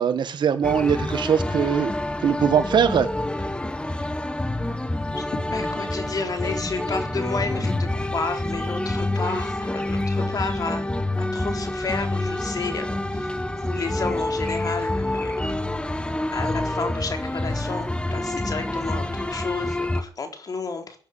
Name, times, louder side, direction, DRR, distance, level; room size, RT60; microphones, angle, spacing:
voice 1, 0.0-1.9 2.2-3.1, right 7 dB, 65° right, 11 dB, 1.7 m, -21 dB
sound 1, 0.6-20.0, left 1 dB, 10° left, 1.8 m, -27 dB
voice 2, 5.5-10.9 11.2-13.3 13.6-15.5 16.3-21.0, left 4 dB, 50° left, 5 dB, 4.2 m, -31 dB
17.0 x 10.0 x 8.3 m, 0.43 s
cardioid pair, 75°, 8 cm